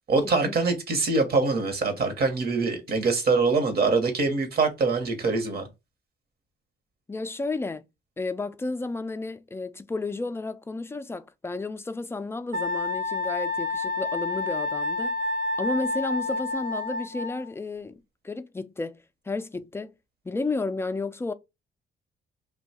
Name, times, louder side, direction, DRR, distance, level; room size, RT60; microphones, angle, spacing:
voice 1, 0.1-5.7, right 3 dB, 50° right, 1.0 m, -24 dB
voice 2, 7.1-7.8 8.2-15.1 15.6-17.9 18.2-19.9 20.2-21.3, left 3 dB, 10° left, 0.3 m, -32 dB
Wind instrument woodwind instrument, 12.5-17.5, left 3 dB, 75° right, 0.6 m, -29 dB
2.8 x 2.3 x 4.1 m
cardioid pair, 90°, 20 cm